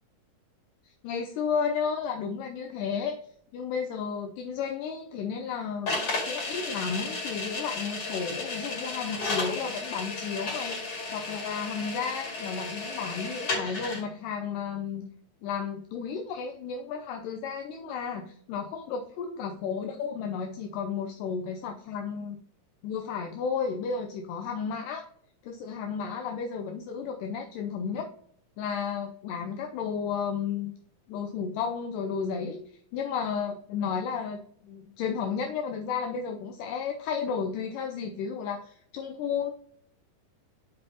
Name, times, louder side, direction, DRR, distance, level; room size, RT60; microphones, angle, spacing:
voice 1, 1.0-3.2 3.5-15.1 15.4-22.4 22.8-25.1 25.4-28.1 28.6-30.7 31.1-32.6 32.9-39.5, left 6 dB, 80° left, 4 dB, 2.2 m, -33 dB
sound 1, 5.9-14.0, left 3 dB, 45° left, 3.0 m, -33 dB
9.6 x 5.3 x 2.8 m, 0.62 s
omnidirectional pair, 4.1 m